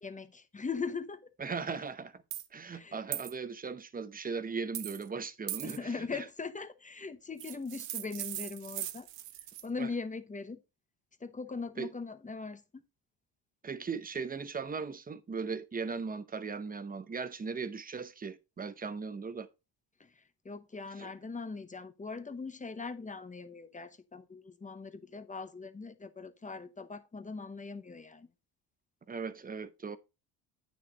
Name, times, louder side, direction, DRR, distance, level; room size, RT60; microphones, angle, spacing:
voice 1, 0.0-1.3 2.7-3.0 5.6-9.1 9.6-10.6 11.2-12.8 20.0-20.1 20.4-28.3, left 4 dB, 15° left, 0.9 m, -40 dB
voice 2, 1.4-2.2 2.5-6.3 9.8-9.9 11.8-11.9 13.6-19.5 21.0-21.1 29.1-30.0, right 5 dB, 20° right, 0.7 m, -38 dB
sound 1, 2.3-2.5 3.1-3.3 4.7-5.1 5.5-5.8 7.4-9.7, right 13 dB, 75° right, 1.0 m, -39 dB
9.2 x 6.2 x 3.9 m
cardioid pair, 120°, 45 cm